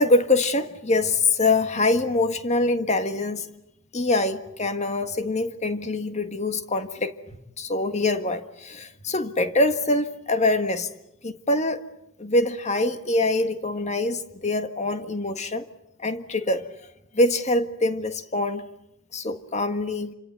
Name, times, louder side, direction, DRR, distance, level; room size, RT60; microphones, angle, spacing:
voice 1, 0.0-3.5 3.9-7.2 7.6-10.9 11.2-11.8 12.2-15.6 16.0-16.7 17.1-18.7 19.1-20.1, left 2 dB, 30° left, 1.6 m, -24 dB
28.0 x 26.0 x 8.2 m
head